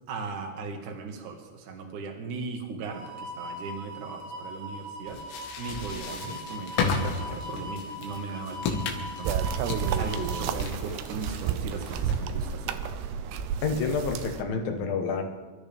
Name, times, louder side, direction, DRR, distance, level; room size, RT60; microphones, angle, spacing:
voice 1, 0.1-5.2 5.6-9.5 9.8-12.8, right 4 dB, 55° right, 2 dB, 2.7 m, -38 dB
sound 1, 2.8-10.5, left 1 dB, 30° right, 2.6 m, -40 dB
sound 2, 5.1-12.4, left 4 dB, 90° left, 4.1 m, -34 dB
sound 3, 9.3-14.4, right 7 dB, 80° right, 2.7 m, -31 dB
voice 2, 13.6-15.2, left 5 dB, 60° left, 3 dB, 2.9 m, -29 dB
27.0 x 13.0 x 3.6 m, 1.3 s
omnidirectional pair, 5.2 m